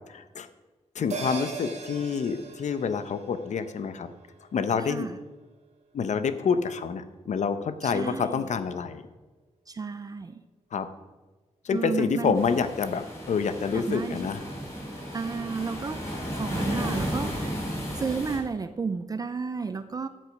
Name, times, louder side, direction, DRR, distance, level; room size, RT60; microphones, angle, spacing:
voice 1, 0.1-0.5 0.9-4.1 4.5-5.1 5.9-9.0 10.7-10.9 11.6-14.4, left 6 dB, 80° left, 11 dB, 0.8 m, -28 dB
sound 1, 1.1-5.8 6.1-6.2, right 4 dB, 75° right, 2.0 m, -40 dB
voice 2, 4.8-5.2 7.8-8.4 9.7-10.4 11.7-12.4 13.7-14.2 15.1-16.0 16.3-17.6 17.9-20.1, right 5 dB, 30° right, 11 dB, 0.4 m, -32 dB
sound 2, 12.3-18.4, equal, 25° left, 4.7 m, -34 dB
13.0 x 7.8 x 5.2 m, 1.2 s
wide cardioid pair, 180°, 12 cm